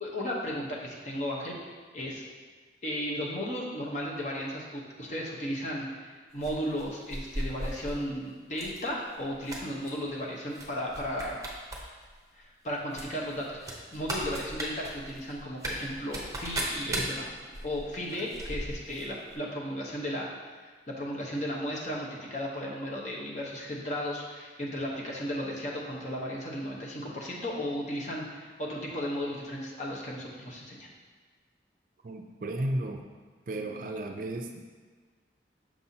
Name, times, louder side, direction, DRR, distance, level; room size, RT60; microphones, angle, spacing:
voice 1, 0.0-2.2 2.8-11.4 12.3-17.3 17.6-20.3 20.6-30.9, equal, 40° left, -2 dB, 0.9 m, -35 dB
sound 1, 6.4-8.0 8.5-8.8 9.1-9.9 10.5-10.7 10.9-11.8 12.1-12.2 12.9-19.1 19.3-19.4, right 1 dB, 20° right, 0.7 m, -36 dB
voice 2, 32.0-33.1 33.5-34.6, right 1 dB, 45° right, 4 dB, 0.4 m, -34 dB
6.1 x 5.5 x 2.8 m, 1.4 s
head